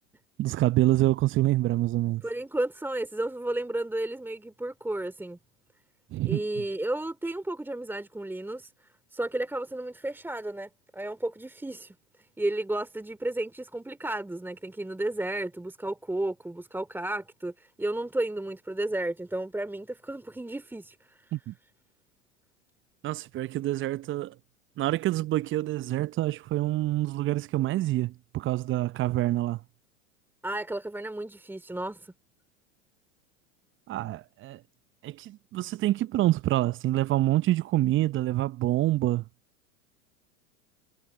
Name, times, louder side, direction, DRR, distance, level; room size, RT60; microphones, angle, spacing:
voice 1, 0.4-2.2 6.1-6.4 21.3-21.5 23.0-24.3 24.8-29.6 33.9-34.6 35.0-39.2, right 15 dB, 30° right, 0.8 m, -26 dB
voice 2, 2.2-5.4 6.2-12.0 12.4-21.3 30.4-32.1, right 1 dB, 5° right, 3.0 m, -33 dB
hypercardioid pair, 90°, 40 cm